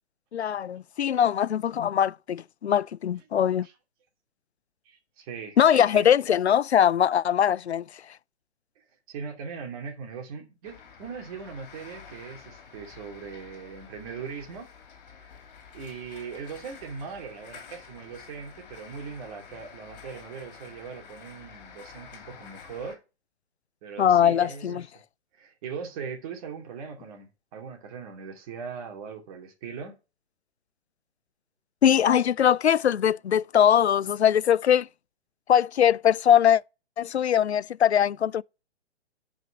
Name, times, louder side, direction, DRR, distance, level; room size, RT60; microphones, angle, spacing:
voice 1, 0.3-3.7 5.6-7.9 24.0-24.8 31.8-34.9 35.5-36.6 37.0-38.4, left 9 dB, 70° left, 0.5 m, -21 dB
voice 2, 4.8-6.1 8.8-14.7 15.1-15.3 15.7-23.0 23.8-24.8 25.3-29.9, right 6 dB, 30° right, 2.8 m, -40 dB
sound 1, 10.6-23.0, left 6 dB, 40° left, 3.1 m, -49 dB
10.5 x 5.2 x 6.0 m
figure-of-eight pair, 125°, 34 cm